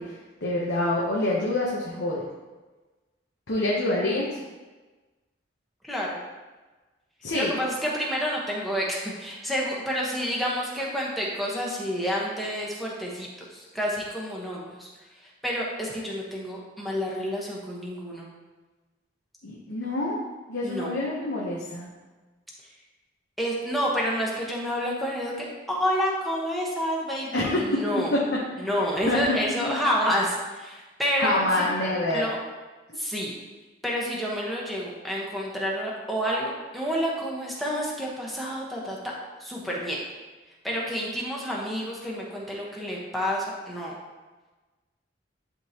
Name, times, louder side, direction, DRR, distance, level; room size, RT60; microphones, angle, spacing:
voice 1, 0.0-2.2 3.5-4.4 7.2-7.5 19.4-20.2 20.5-21.9 27.3-27.8 28.1-28.7 29.0-29.8 31.1-32.2, left 1 dB, 75° left, -4 dB, 1.0 m, -27 dB
voice 2, 5.8-6.2 7.3-18.3 20.6-20.9 23.4-28.1 28.6-31.6 32.1-32.4 32.9-33.3 33.8-39.0 39.4-40.0 40.6-43.9, equal, ahead, -5 dB, 1.2 m, -29 dB
11.0 x 3.8 x 2.9 m, 1.2 s
head